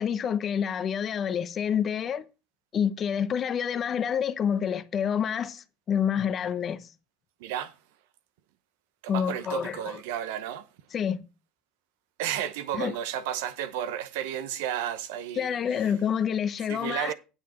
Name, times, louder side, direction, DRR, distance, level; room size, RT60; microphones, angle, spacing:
voice 1, 0.0-2.2 2.7-6.9 9.1-10.0 10.9-11.3 12.7-13.0 15.4-17.1, left 8 dB, 40° left, 0.9 m, -28 dB
voice 2, 7.4-7.8 9.0-10.7 12.2-15.9 16.7-17.1, right 10 dB, 75° right, 1.0 m, -33 dB
9.2 x 9.0 x 4.4 m
hypercardioid pair, 75°, 0 cm